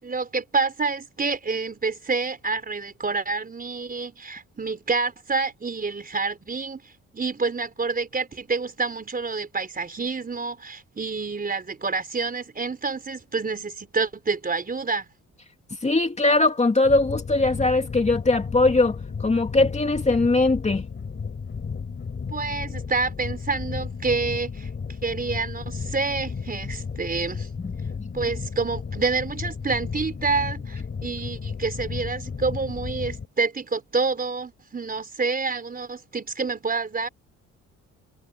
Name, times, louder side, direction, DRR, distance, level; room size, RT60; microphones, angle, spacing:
voice 1, 0.0-15.0 22.3-24.7 25.0-27.5 28.1-37.1, right 4 dB, 30° right, 4.4 m, -28 dB
voice 2, 15.8-20.8, left 2 dB, 25° left, 2.4 m, -21 dB
sound 1, 16.8-33.3, left 5 dB, 40° left, 6.6 m, -33 dB
cardioid pair, 90°, 30 cm